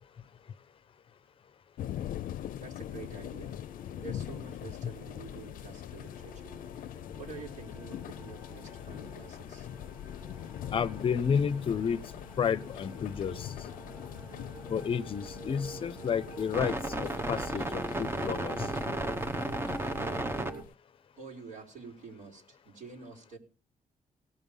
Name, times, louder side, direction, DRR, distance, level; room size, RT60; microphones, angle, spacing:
sound 1, 1.8-20.7, left 11 dB, 80° left, 0.5 m, -43 dB
voice 1, 2.6-3.6 4.0-6.6 7.2-9.7 21.2-23.4, right 4 dB, 70° right, 4.2 m, -47 dB
sound 2, 3.4-4.3 4.9-5.2 6.0-20.6, right 2 dB, 15° right, 0.9 m, -39 dB
voice 2, 10.7-12.0 12.4-13.5 14.7-18.7, left 7 dB, 40° left, 0.6 m, -31 dB
17.5 x 6.8 x 5.4 m
wide cardioid pair, 165°, 14 cm